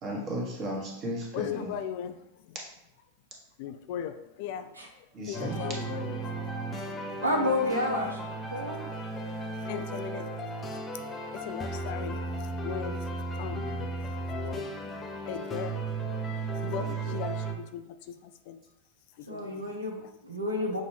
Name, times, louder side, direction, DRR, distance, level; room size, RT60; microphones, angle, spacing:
voice 1, 0.0-1.7 5.1-5.6, equal, 35° right, -2 dB, 1.3 m, -34 dB
voice 2, 1.3-2.6 3.6-6.9 8.8-9.0 9.6-11.0 11.3-15.8 16.3-18.6 19.1-20.1 20.6-20.8, left 9 dB, 50° left, 8 dB, 0.3 m, -40 dB
sound 1, 5.3-17.5, right 2 dB, 20° left, 0.7 m, -35 dB
voice 3, 7.2-8.9 19.3-20.8, left 1 dB, 80° right, 1 dB, 0.8 m, -30 dB
6.1 x 2.6 x 3.2 m, 0.84 s
figure-of-eight pair, 90°, 0 cm